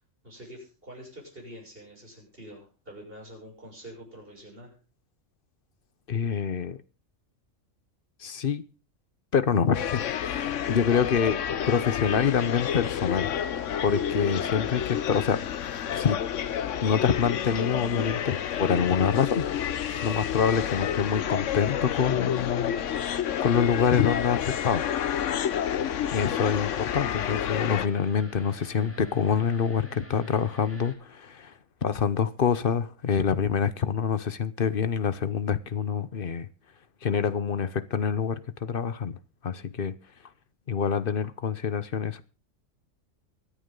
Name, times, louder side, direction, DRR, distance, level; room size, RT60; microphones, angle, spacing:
voice 1, 0.2-4.8, equal, 45° right, 7.1 m, -46 dB
voice 2, 6.1-6.8 8.2-8.6 9.3-11.4 11.7-13.3 13.8-15.4 15.9-16.2 16.8-19.7 20.0-22.7 23.4-24.8 26.1-31.5 31.8-36.5 37.0-39.2 39.4-40.0 40.7-42.2, left 7 dB, 50° left, 1.0 m, -26 dB
sound 1, 9.7-27.9, left 9 dB, 70° left, 1.1 m, -29 dB
sound 2, 25.4-30.9, equal, 10° left, 2.7 m, -48 dB
24.0 x 8.5 x 3.8 m
omnidirectional pair, 1.3 m